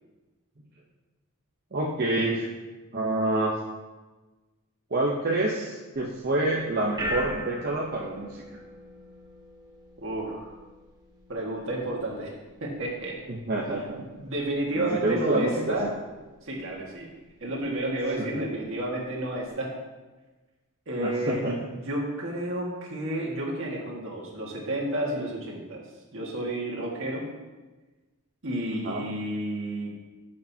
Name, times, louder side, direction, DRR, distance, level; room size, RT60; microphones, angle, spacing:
voice 1, 1.7-2.5 2.9-3.6 4.9-8.4 13.3-14.0 14.7-15.8 18.2-18.4 21.0-21.6 28.8-29.1, right 2 dB, 45° right, -3 dB, 0.8 m, -27 dB
sound 1, 6.2-19.5, equal, 20° right, 1.2 m, -43 dB
voice 2, 10.0-10.5 11.3-12.3 12.6-13.2 14.2-15.9 16.4-17.1 17.4-19.7 20.9-21.4 21.8-25.8 26.1-27.3 28.4-29.9, right 1 dB, 65° right, -2 dB, 1.8 m, -31 dB
11.5 x 6.5 x 2.8 m, 1.2 s
head